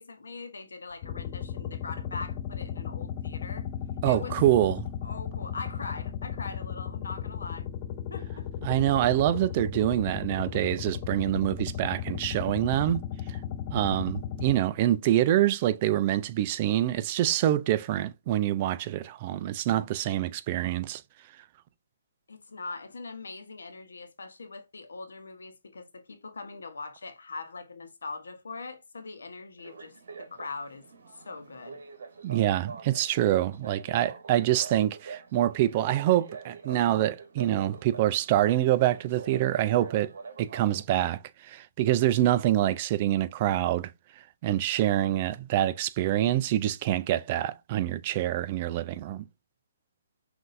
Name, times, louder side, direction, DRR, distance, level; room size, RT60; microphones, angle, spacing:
voice 1, 0.0-3.7 4.1-4.4 5.0-7.7 8.1-8.5 22.3-31.8, left 4 dB, 90° left, 1.0 m, -41 dB
sound 1, 1.0-14.6, left 9 dB, 30° left, 0.4 m, -35 dB
voice 2, 4.0-4.8 8.6-13.0 13.7-21.0 32.2-40.1 40.4-43.9 44.4-49.2, right 13 dB, 30° right, 0.3 m, -26 dB
sound 2, 29.6-40.8, right 5 dB, 65° right, 1.2 m, -45 dB
5.8 x 2.6 x 2.6 m
hypercardioid pair, 160°, 0 cm